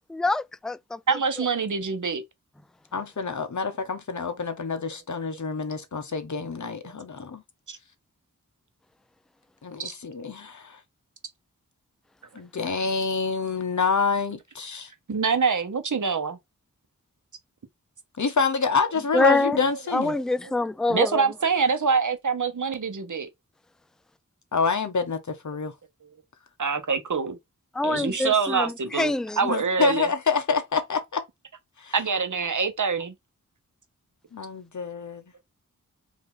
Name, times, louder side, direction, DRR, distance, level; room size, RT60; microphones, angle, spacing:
voice 1, 0.1-1.2 19.1-19.6 19.9-21.2 27.7-29.5, left 2 dB, ahead, 0.3 m, -25 dB
voice 2, 1.1-2.2 6.8-6.9 7.7-7.8 9.8-9.9 15.1-16.4 20.1-20.2 20.9-23.3 26.6-27.4 27.8-29.1 29.4-30.1 31.9-33.1, right 5 dB, 65° right, 1.1 m, -25 dB
voice 3, 2.9-7.4 9.6-10.8 12.3-14.9 18.2-20.2 24.5-25.7 29.5-31.2 31.8-31.9 34.3-35.2, left 5 dB, 60° left, 1.1 m, -27 dB
4.8 x 2.8 x 3.8 m
wide cardioid pair, 65°, 33 cm